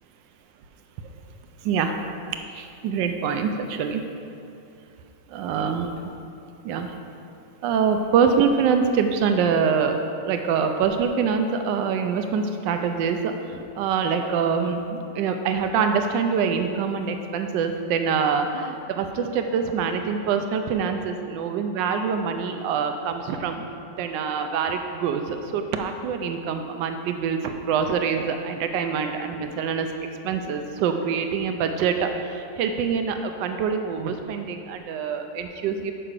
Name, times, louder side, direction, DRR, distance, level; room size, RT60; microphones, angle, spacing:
voice 1, 1.6-2.1 2.6-4.0 5.3-6.1 6.6-7.0 7.6-10.0 10.2-23.7 24.0-29.9 30.2-35.9, right 6 dB, 85° right, 6 dB, 1.3 m, -25 dB
6.6 x 5.9 x 6.4 m, 2.6 s
omnidirectional pair, 1.9 m